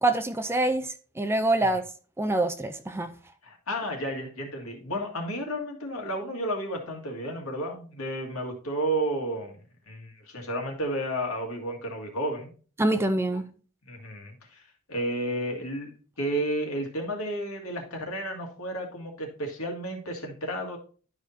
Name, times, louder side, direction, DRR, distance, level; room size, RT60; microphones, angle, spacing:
voice 1, 0.0-1.8 2.2-3.1 12.8-13.4, right 2 dB, 10° right, 0.4 m, -25 dB
voice 2, 3.4-9.6 9.9-12.5 13.9-14.6 14.9-20.8, right 1 dB, 75° left, 1.9 m, -32 dB
11.5 x 4.9 x 2.7 m
head